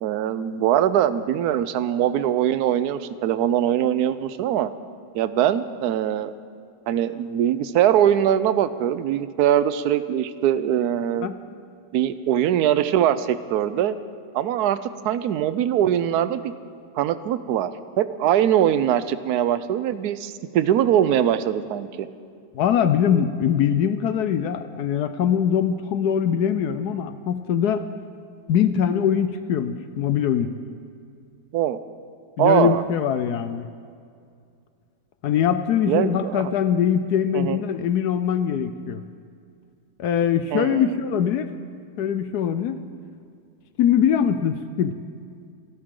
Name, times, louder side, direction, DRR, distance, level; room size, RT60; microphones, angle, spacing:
voice 1, 0.0-4.7 5.1-6.3 6.9-11.3 11.9-14.0 14.3-14.8 15.0-16.4 16.9-17.7 18.0-22.1 31.5-31.8 32.4-32.8 35.9-36.5 37.3-37.6 40.5-41.0, right 10 dB, 70° right, 13 dB, 1.2 m, -22 dB
voice 2, 22.5-27.9 28.5-30.5 32.4-33.7 35.2-39.0 40.0-41.5 42.0-42.8 43.8-45.0, left 8 dB, 75° left, 11 dB, 1.2 m, -22 dB
27.5 x 13.5 x 3.8 m, 2.3 s
omnidirectional pair, 1.8 m